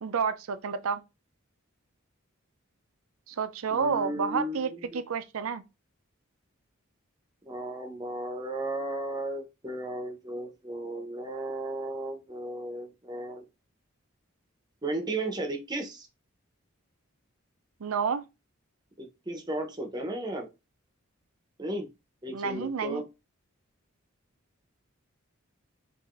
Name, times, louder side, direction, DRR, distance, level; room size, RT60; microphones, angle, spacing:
voice 1, 0.0-1.0 3.3-5.6 17.8-18.2 22.3-23.0, right 6 dB, 80° right, 0.5 m, -30 dB
voice 2, 3.7-5.0 7.5-13.4 14.8-16.1 19.0-20.5 21.6-21.9 22.2-23.0, right 1 dB, 20° right, 0.7 m, -35 dB
4.7 x 2.6 x 2.5 m
head